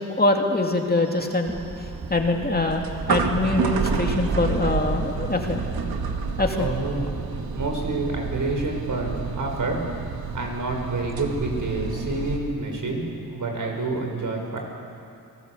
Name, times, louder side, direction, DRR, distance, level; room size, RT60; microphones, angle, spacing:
voice 1, 0.0-1.5 2.1-5.6 6.4-6.7, left 2 dB, 25° left, 2 dB, 2.5 m, -23 dB
sound 1, 1.1-12.4, right 5 dB, 85° right, 2.1 m, -30 dB
sound 2, 1.4-9.5, right 3 dB, 45° right, 2.3 m, -37 dB
voice 2, 6.6-9.8 10.3-14.6, right 2 dB, 60° right, 1 dB, 5.8 m, -28 dB
29.5 x 19.5 x 8.1 m, 2.5 s
cardioid pair, 100°, 35 cm